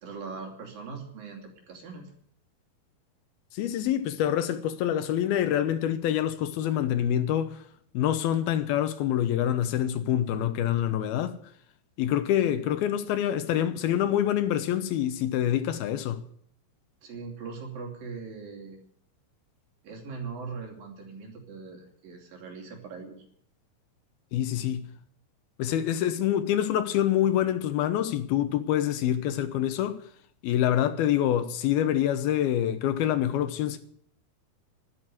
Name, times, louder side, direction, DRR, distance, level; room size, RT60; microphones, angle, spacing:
voice 1, 0.0-2.1 12.4-12.5 17.0-18.8 19.8-23.2, right 5 dB, 65° right, 4.5 m, -40 dB
voice 2, 3.5-7.6 7.9-11.4 12.0-16.2 24.3-24.9 25.6-30.0 30.4-33.8, left 11 dB, 80° left, 2.8 m, -26 dB
12.0 x 11.0 x 7.8 m
omnidirectional pair, 4.5 m